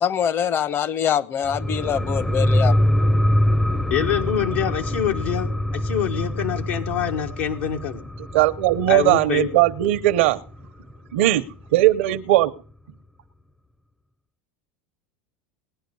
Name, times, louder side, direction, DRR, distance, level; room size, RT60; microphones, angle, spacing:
voice 1, 0.0-2.8, left 8 dB, 35° left, 18 dB, 0.9 m, -24 dB
sound 1, 1.4-10.6 10.9-11.0, left 1 dB, 5° left, 0.6 m, -24 dB
voice 2, 3.9-8.0 8.9-9.5, left 9 dB, 80° left, 3 dB, 1.8 m, -25 dB
voice 3, 8.3-10.4 11.1-11.4 11.7-12.5, right 15 dB, 75° right, 8 dB, 0.8 m, -18 dB
18.5 x 10.0 x 5.4 m, 0.41 s
supercardioid pair, 115°, 7 cm